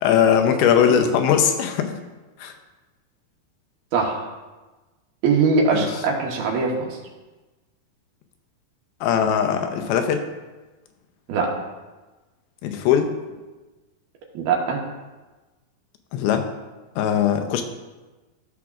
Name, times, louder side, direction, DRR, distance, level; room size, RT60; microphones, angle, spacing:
voice 1, 0.0-1.9 2.4-2.5 5.7-5.9 9.0-10.2 12.6-13.1 16.1-16.5 17.0-17.6, left 8 dB, 85° left, 6 dB, 2.6 m, -20 dB
voice 2, 3.9-4.3 5.2-7.0 11.3-11.5 14.3-14.8, right 4 dB, 80° right, -1 dB, 3.0 m, -21 dB
14.5 x 5.9 x 2.4 m, 1.2 s
omnidirectional pair, 4.4 m